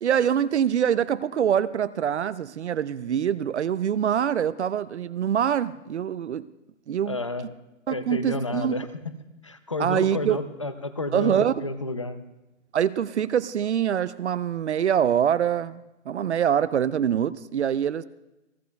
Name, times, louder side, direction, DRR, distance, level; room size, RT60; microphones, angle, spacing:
voice 1, 0.0-6.4 6.9-7.2 7.9-8.8 9.8-10.4 11.1-11.5 12.7-18.0, right 9 dB, 65° right, 15 dB, 0.6 m, -24 dB
voice 2, 7.1-7.5 7.9-9.1 9.4-12.2, left 2 dB, 25° left, 11 dB, 0.5 m, -31 dB
29.0 x 11.5 x 2.3 m, 0.99 s
hypercardioid pair, 175°, 37 cm